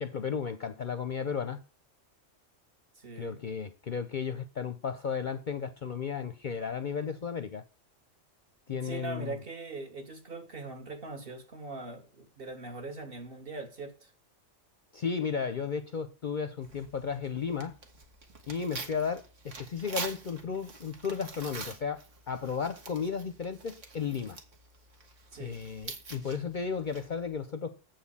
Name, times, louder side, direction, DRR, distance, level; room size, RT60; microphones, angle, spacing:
voice 1, 0.0-1.6 3.2-7.6 8.7-9.4 14.9-17.8 18.5-24.4 25.4-27.8, left 6 dB, 50° left, 0.6 m, -34 dB
voice 2, 3.0-3.5 8.7-14.1 25.3-25.6, right 3 dB, 50° right, 1.8 m, -41 dB
Tearing, 16.6-27.3, right 4 dB, 80° right, 1.8 m, -45 dB
7.8 x 4.3 x 7.0 m
omnidirectional pair, 1.3 m